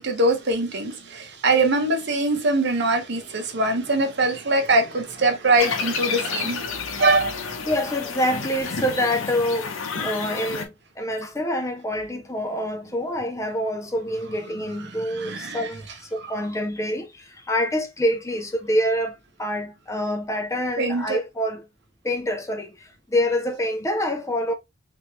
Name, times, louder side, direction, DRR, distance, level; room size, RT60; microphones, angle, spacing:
voice 1, 0.0-7.4 15.1-15.7 20.8-21.2, right 2 dB, 55° right, 0.9 m, -22 dB
sound 1, 5.6-10.6, left 5 dB, 90° left, 0.8 m, -30 dB
voice 2, 7.7-9.7 10.0-21.6 22.0-24.5, left 1 dB, 15° left, 0.5 m, -26 dB
3.5 x 3.1 x 3.0 m
head